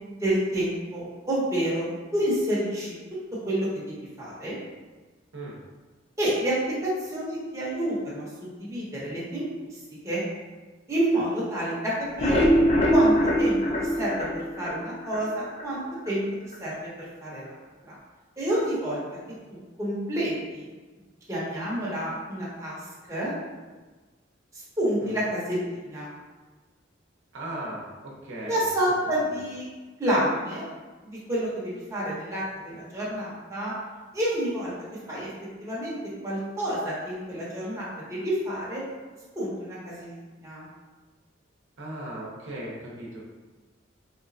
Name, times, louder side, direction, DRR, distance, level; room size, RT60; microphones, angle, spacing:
voice 1, 0.1-2.9 3.3-4.6 6.2-9.5 10.0-10.2 10.9-12.5 12.9-14.3 14.6-16.2 16.6-16.9 17.2-17.5 17.9-18.0 18.4-19.0 19.5-20.6 21.3-22.8 23.1-23.3 24.8-26.1 28.5-29.6 30.0-30.6 31.0-33.7 34.1-34.7 35.1-35.3 35.6-38.8 39.4-40.2 40.4-40.7, right 1 dB, 15° right, -8 dB, 0.8 m, -29 dB
sound 1, 12.0-15.2 15.6-15.7 16.1-16.2 16.5-16.6, equal, 30° left, 0.4 m, -22 dB
voice 2, 27.3-28.7 41.8-43.2, right 1 dB, 70° right, -4 dB, 0.8 m, -37 dB
3.3 x 3.0 x 2.6 m, 1.3 s
head